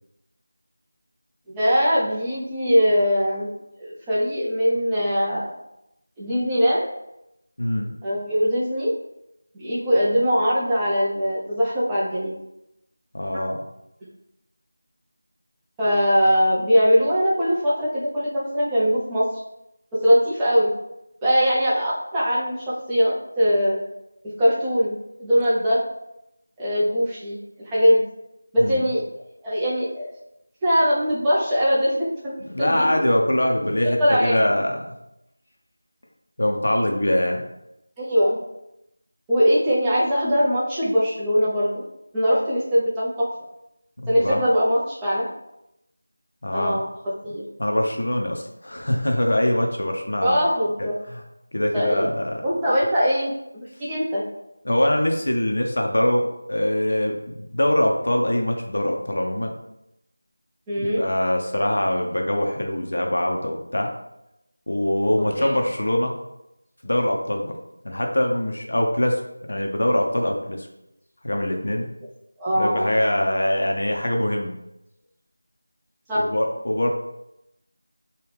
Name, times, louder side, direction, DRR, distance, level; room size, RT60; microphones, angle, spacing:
voice 1, 1.5-3.5 3.8-5.5 6.2-6.9 8.0-8.9 9.5-12.3 15.8-19.3 20.0-20.7 21.2-23.8 24.4-25.8 26.6-27.4 27.6-28.0 28.5-30.1 30.6-32.0 32.2-33.0 33.8-34.4 38.0-38.4 39.3-41.7 42.1-43.3 44.1-45.3 46.5-46.9 47.2-47.4 50.2-51.0 51.7-52.1 52.4-54.2 60.7-61.0 65.4-65.6 72.4-72.9 76.1-76.3, equal, 10° right, -8 dB, 0.6 m, -21 dB
voice 2, 7.6-7.9 13.1-13.6 28.6-28.9 32.5-34.9 36.4-37.4 44.0-44.4 46.4-46.8 47.6-50.4 50.8-50.9 51.5-52.4 54.6-59.5 60.8-63.9 64.7-66.1 66.8-67.6 67.8-69.2 69.5-70.7 71.2-71.9 72.5-74.5 76.2-76.9, left 1 dB, 60° left, 2 dB, 0.5 m, -23 dB
3.4 x 2.2 x 3.3 m, 0.85 s
figure-of-eight pair, 170°, 0 cm